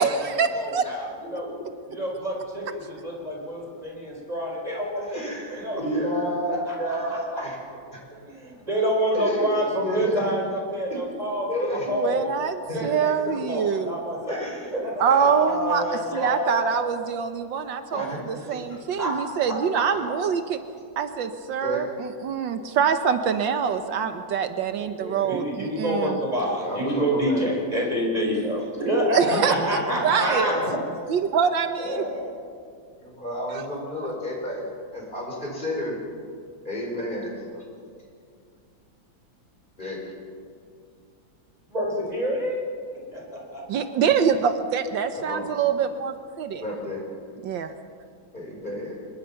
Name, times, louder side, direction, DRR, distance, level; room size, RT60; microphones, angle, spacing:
voice 1, 0.0-0.9 11.9-14.0 15.0-15.8 16.1-20.6 21.0-26.2 29.1-29.6 30.0-30.5 31.1-32.0 43.7-46.6 47.4-47.7, right 7 dB, 75° right, 9 dB, 1.6 m, -25 dB
voice 2, 0.5-1.5 1.9-5.2 5.5-5.8 6.5-7.4 8.1-12.3 12.7-14.4 14.7-15.3 15.9-16.4 19.0-20.1 25.2-30.5 41.7-42.6 43.1-43.8, equal, 20° right, -2 dB, 5.0 m, -28 dB
voice 3, 5.0-7.6 9.1-9.5 9.8-10.2 10.9-11.0 11.5-11.9 12.7-12.9 14.2-14.7 15.1-16.7 17.9-18.6 19.9-20.1 21.6-21.9 24.7-25.3 26.3-27.5 29.1-29.6 29.9-30.0 30.4-30.8 31.8-32.3 33.0-36.0 36.6-37.6 39.8-40.0 45.1-45.5 46.6-47.0 48.3-49.0, equal, 25° left, -1 dB, 5.3 m, -31 dB
24.5 x 21.5 x 5.8 m, 2.2 s
omnidirectional pair, 2.1 m